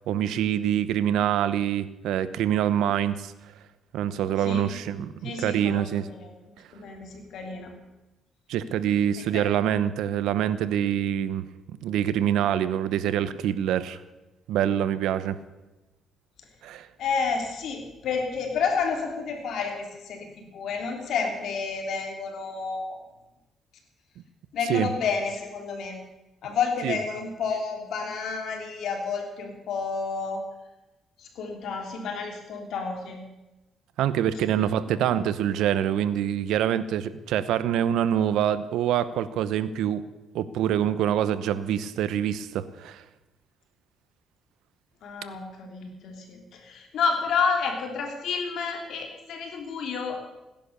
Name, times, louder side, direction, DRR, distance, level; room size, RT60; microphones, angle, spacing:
voice 1, 0.1-3.3 3.9-6.1 8.5-11.4 11.8-14.0 14.5-15.4 16.6-16.9 24.7-24.9 26.8-27.0 34.0-40.0 40.3-43.0, right 10 dB, 85° right, 14 dB, 0.9 m, -25 dB
voice 2, 4.4-4.7 5.2-7.7 9.3-9.4 17.0-23.0 24.5-26.0 26.4-30.5 31.2-33.3 34.5-35.0 45.0-50.2, left 5 dB, 75° left, 3 dB, 3.4 m, -30 dB
17.0 x 10.5 x 6.8 m, 1.0 s
cardioid pair, 90°, 0 cm